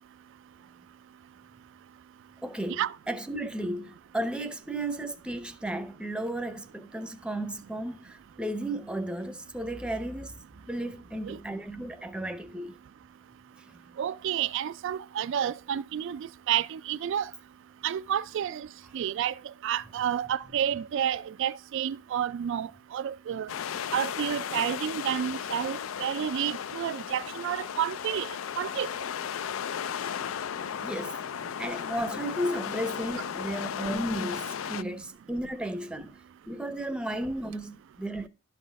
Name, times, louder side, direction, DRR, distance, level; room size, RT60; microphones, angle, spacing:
voice 1, 2.4-10.4 10.7-12.8 13.7-13.8 30.8-31.2 31.6-36.1 36.5-38.3, right 1 dB, 5° right, 0.7 m, -34 dB
voice 2, 14.0-17.3 17.8-18.7 18.9-19.3 19.6-23.5 23.9-28.9, right 9 dB, 65° right, 0.3 m, -30 dB
sound 1, 23.5-34.8, left 8 dB, 70° left, 0.4 m, -35 dB
11.5 x 4.1 x 5.2 m
head